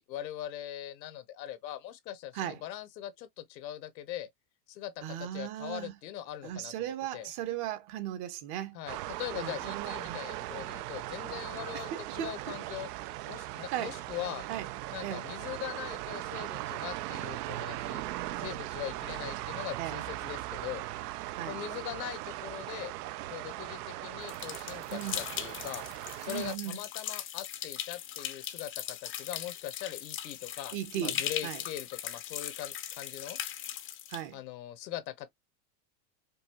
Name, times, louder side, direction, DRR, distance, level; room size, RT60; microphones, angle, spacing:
voice 1, 0.0-4.3 4.7-7.3 8.7-12.9 13.3-14.5 14.9-18.0 18.4-20.8 21.5-22.9 23.3-25.9 26.2-33.4 34.3-35.3, left 12 dB, 85° left, 1.1 m, -41 dB
voice 2, 5.0-6.0 6.4-8.8 9.3-10.2 11.7-12.6 13.7-14.0 14.5-14.7 15.0-15.3 19.8-20.0 21.3-21.6 24.9-25.2 26.3-26.8 30.7-31.6 34.1-34.4, right 11 dB, 50° right, 1.2 m, -37 dB
sound 1, 8.9-26.6, right 16 dB, 70° right, 0.6 m, -39 dB
sound 2, 24.3-34.2, left 11 dB, 25° left, 0.5 m, -39 dB
5.2 x 2.4 x 2.9 m
supercardioid pair, 130°, 50 cm